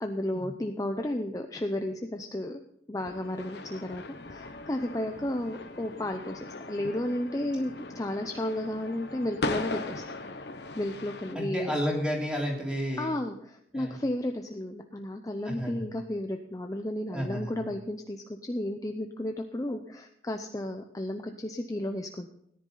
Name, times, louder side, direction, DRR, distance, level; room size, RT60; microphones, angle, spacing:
voice 1, 0.0-2.6 2.9-10.0 10.3-11.7 13.0-22.3, left 1 dB, 20° left, 5 dB, 0.6 m, -33 dB
sound 1, 3.0-11.3, left 2 dB, 60° left, 1.0 m, -39 dB
voice 2, 11.3-13.1 13.7-14.0 15.4-15.8 17.1-17.5, equal, 5° right, -2 dB, 3.3 m, -31 dB
17.5 x 10.5 x 3.9 m, 0.76 s
head